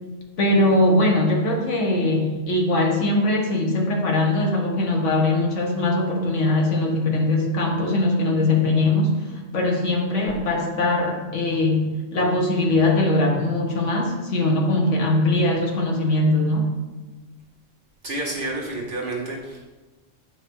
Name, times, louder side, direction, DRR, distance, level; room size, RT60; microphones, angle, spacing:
voice 1, 0.4-16.7, left 2 dB, 70° left, 1 dB, 1.5 m, -21 dB
voice 2, 18.0-19.6, right 2 dB, 45° right, -3 dB, 1.2 m, -29 dB
8.6 x 5.0 x 3.7 m, 1.2 s
omnidirectional pair, 1.3 m